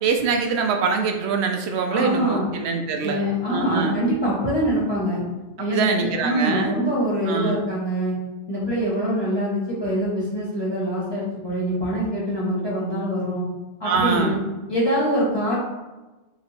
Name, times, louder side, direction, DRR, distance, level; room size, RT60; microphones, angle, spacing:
voice 1, 0.0-3.2 3.5-4.0 5.7-6.8 7.2-7.6 13.8-14.4, right 5 dB, 85° right, 4 dB, 0.9 m, -24 dB
voice 2, 1.9-2.5 3.0-5.2 5.6-8.2 8.5-13.4 13.8-14.4 14.7-15.6, equal, 25° left, -8 dB, 1.6 m, -24 dB
3.1 x 3.0 x 4.2 m, 1.1 s
omnidirectional pair, 1.1 m